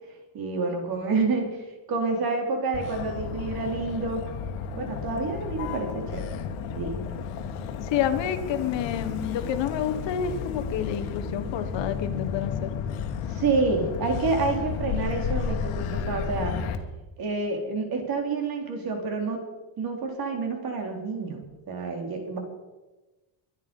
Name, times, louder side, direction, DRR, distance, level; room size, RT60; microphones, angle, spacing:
voice 1, 0.3-1.6 1.9-4.3 4.8-6.3 6.7-7.1 13.3-16.6 17.2-19.5 19.8-22.4, right 3 dB, 45° right, 2 dB, 4.0 m, -28 dB
Motor vehicle (road), 2.7-16.8, left 6 dB, 80° left, 1.8 m, -32 dB
voice 2, 7.8-12.7, left 9 dB, 60° left, 8 dB, 1.5 m, -29 dB
23.5 x 9.4 x 5.5 m, 1.1 s
cardioid pair, 160°, 49 cm